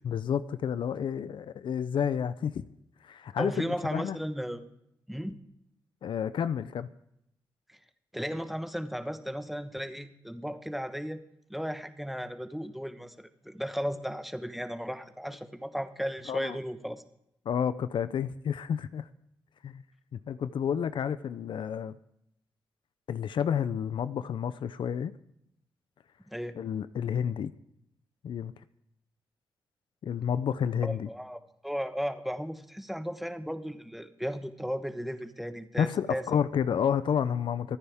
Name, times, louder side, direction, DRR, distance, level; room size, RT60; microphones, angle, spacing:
voice 1, 0.0-2.6 3.0-4.2 6.0-6.9 16.3-16.6 17.5-19.1 19.6-19.8 20.1-22.0 23.1-25.1 26.6-27.5 28.2-28.5 30.0-31.1 35.8-37.8, left 8 dB, 70° left, 0.6 m, -30 dB
voice 2, 3.4-4.6 5.1-5.4 7.7-7.8 8.1-11.2 11.5-17.0 26.3-26.6 30.8-36.2, equal, ahead, 1.2 m, -35 dB
25.0 x 9.8 x 3.6 m
cardioid pair, 80°, 9 cm